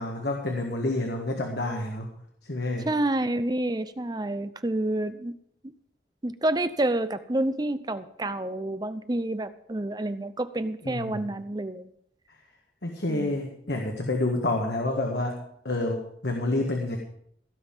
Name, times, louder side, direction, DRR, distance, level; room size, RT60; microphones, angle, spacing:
voice 1, 0.0-2.1 2.5-2.9 10.8-11.2 12.8-15.4 15.7-17.0, left 2 dB, 75° left, 2 dB, 1.8 m, -28 dB
voice 2, 2.9-5.3 6.2-11.9 13.1-13.4, right 1 dB, 25° right, 12 dB, 0.6 m, -28 dB
16.0 x 5.8 x 8.9 m, 0.69 s
head